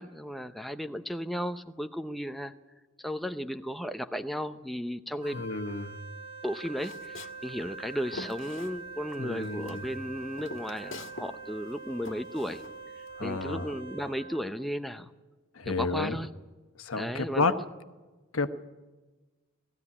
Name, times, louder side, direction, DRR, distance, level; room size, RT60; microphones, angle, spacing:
voice 1, 0.0-2.5 3.0-5.4 6.4-12.6 13.2-15.1 15.7-16.3 17.0-17.5, equal, ahead, 7 dB, 0.7 m, -35 dB
Wind instrument woodwind instrument, 5.2-14.5, right 4 dB, 25° right, 2.3 m, -44 dB
voice 2, 5.3-5.9 9.2-9.8 13.2-13.7 15.6-16.2 16.8-17.6 18.3-18.5, left 3 dB, 85° left, 9 dB, 1.2 m, -30 dB
Walk footsteps, 6.8-9.2 9.4-11.4 11.6-13.2, left 2 dB, 65° left, 1.6 m, -44 dB
19.0 x 15.0 x 9.8 m, 1.2 s
head